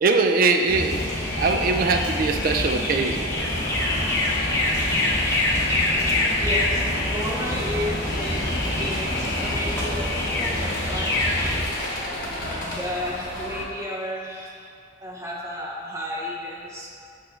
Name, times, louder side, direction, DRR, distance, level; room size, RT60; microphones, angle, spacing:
voice 1, 0.0-1.0 1.3-3.5, right 3 dB, 45° right, 4 dB, 0.4 m, -22 dB
sound 1, 0.7-11.7, left 1 dB, 15° left, 0.8 m, -25 dB
sound 2, 3.4-13.7, left 1 dB, 45° left, 1.0 m, -33 dB
voice 2, 6.4-11.2 12.7-14.7 15.0-16.9, left 1 dB, 15° right, -3 dB, 0.7 m, -32 dB
6.8 x 2.6 x 5.6 m, 2.4 s
head